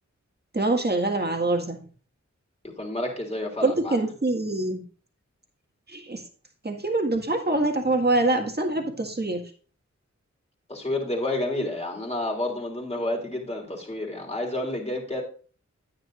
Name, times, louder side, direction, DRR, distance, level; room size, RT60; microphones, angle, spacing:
voice 1, 0.5-1.8 3.6-4.8 5.9-6.2 6.6-9.4, right 2 dB, 35° right, 2 dB, 1.9 m, -24 dB
voice 2, 2.6-4.0 10.7-15.2, left 1 dB, 20° left, -1 dB, 3.1 m, -30 dB
9.8 x 9.7 x 2.5 m, 0.40 s
wide cardioid pair, 55°, 29 cm